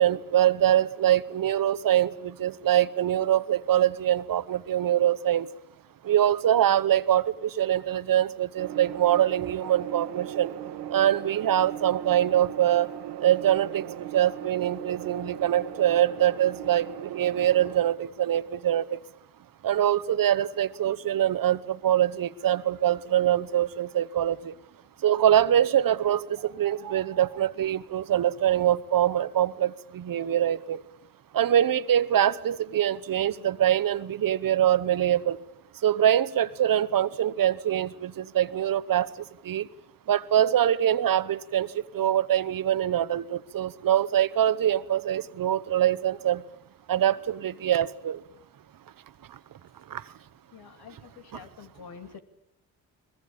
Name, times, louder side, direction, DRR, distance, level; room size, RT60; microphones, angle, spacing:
voice 1, 0.0-5.5 6.0-10.5 10.9-12.9 13.2-19.0 19.6-24.5 25.0-30.8 31.3-35.4 35.8-39.1 39.4-39.7 40.1-46.4 46.9-48.2 49.9-50.0, right 11 dB, 60° right, 16 dB, 1.1 m, -24 dB
sound 1, 8.6-17.8, right 11 dB, 90° right, 1.5 m, -38 dB
voice 2, 50.5-52.2, left 6 dB, 75° left, 8 dB, 2.7 m, -47 dB
22.0 x 21.5 x 8.7 m, 0.80 s
cardioid pair, 75°, 38 cm